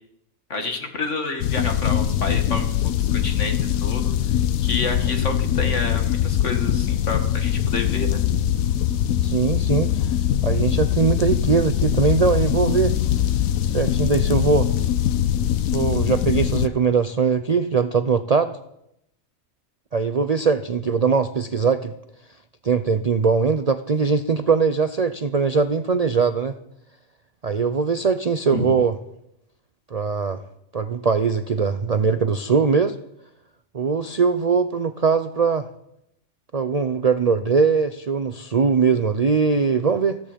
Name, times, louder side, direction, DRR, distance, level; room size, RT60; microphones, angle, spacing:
voice 1, 0.5-2.7 3.0-4.1 4.6-8.2 28.5-28.7, left 3 dB, 60° left, 5 dB, 2.3 m, -29 dB
sound 1, 1.4-16.7, left 10 dB, 90° left, 1.2 m, -22 dB
voice 2, 9.2-10.2 10.4-12.9 13.7-14.7 15.7-18.5 19.9-21.9 22.6-26.6 27.4-28.9 29.9-30.4 30.7-33.0 33.7-35.7 36.5-40.2, right 5 dB, 45° right, 10 dB, 0.5 m, -21 dB
15.5 x 14.0 x 5.2 m, 0.78 s
omnidirectional pair, 1.4 m